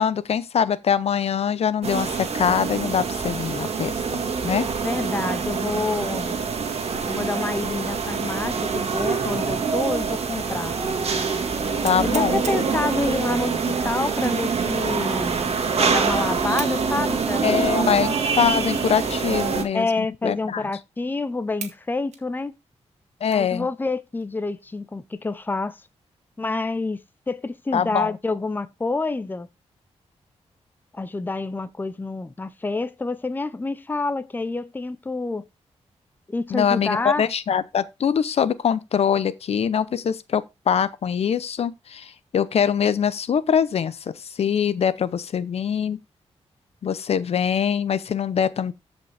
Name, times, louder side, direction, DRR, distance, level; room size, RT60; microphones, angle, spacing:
voice 1, 0.0-4.7 11.8-12.4 17.4-20.6 23.2-23.7 27.7-28.1 36.5-46.0 46.8-48.7, left 7 dB, 65° left, 0.7 m, -23 dB
sound 1, 1.8-19.6, right 5 dB, 60° right, 1.8 m, -25 dB
voice 2, 4.8-6.4 7.1-10.7 12.1-15.4 15.8-17.6 19.7-22.5 23.3-25.8 26.4-27.0 27.3-29.5 30.9-35.5 36.3-37.3, left 3 dB, 15° left, 0.6 m, -28 dB
sound 2, 11.8-12.8 14.1-14.5 15.1-15.2 16.5-16.8 17.4-17.6 18.2-18.3 19.3-19.7 20.0-20.1 20.7-20.8 21.6-21.8 22.1-23.6 24.1-24.3 24.7-25.2, right 6 dB, 80° right, 2.0 m, -39 dB
13.5 x 5.2 x 3.4 m
wide cardioid pair, 130°, 12 cm